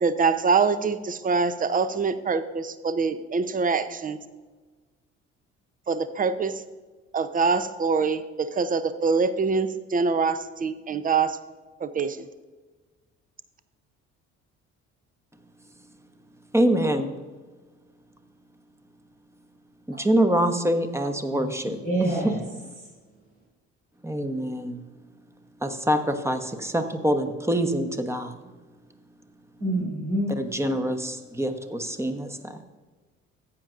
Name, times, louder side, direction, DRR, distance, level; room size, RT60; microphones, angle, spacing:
voice 1, 0.0-4.2 5.9-6.5 7.1-11.4 11.8-12.3, right 5 dB, 25° right, 13 dB, 0.7 m, -24 dB
voice 2, 16.5-17.1 19.9-22.4 24.0-24.8 25.6-28.4 30.4-32.6, right 1 dB, 10° right, 7 dB, 1.1 m, -25 dB
voice 3, 21.8-22.4 29.6-30.3, right 1 dB, 85° right, -7 dB, 3.1 m, -26 dB
14.5 x 9.2 x 2.5 m, 1.3 s
hypercardioid pair, 55°, 34 cm